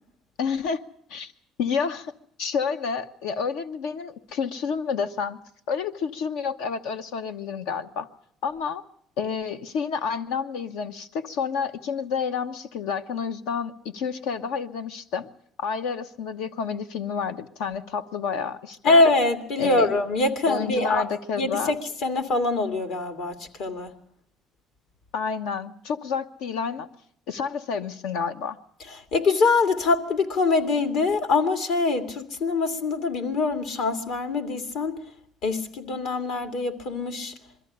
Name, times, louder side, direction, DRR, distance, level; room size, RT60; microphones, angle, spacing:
voice 1, 0.4-0.8 1.1-1.3 1.6-2.1 2.4-5.4 5.7-8.1 8.4-8.8 9.2-15.3 15.6-19.0 19.6-19.9 20.5-21.7 25.1-26.9 27.3-28.6, left 6 dB, 90° left, 1.0 m, -29 dB
voice 2, 18.8-21.1 21.4-23.9 29.1-35.0 35.4-37.3, left 3 dB, 70° left, 2.4 m, -24 dB
22.5 x 14.0 x 10.0 m
cardioid pair, 120°, 0 cm